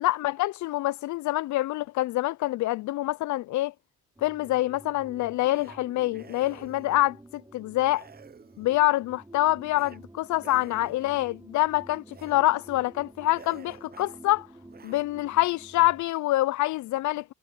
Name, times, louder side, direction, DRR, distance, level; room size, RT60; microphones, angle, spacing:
voice 1, 0.0-3.7 4.2-8.0 8.6-14.5 14.8-17.3, left 17 dB, 75° left, 0.4 m, -26 dB
sound 1, 4.2-16.1, right 2 dB, 10° right, 3.8 m, -50 dB
sound 2, 5.5-5.8 6.1-7.0 7.9-8.8 9.7-10.0 10.3-11.3 12.1-12.4 12.8-12.9 13.3-14.2 14.7-15.1, right 6 dB, 30° right, 0.9 m, -50 dB
cardioid pair, 90°, 30 cm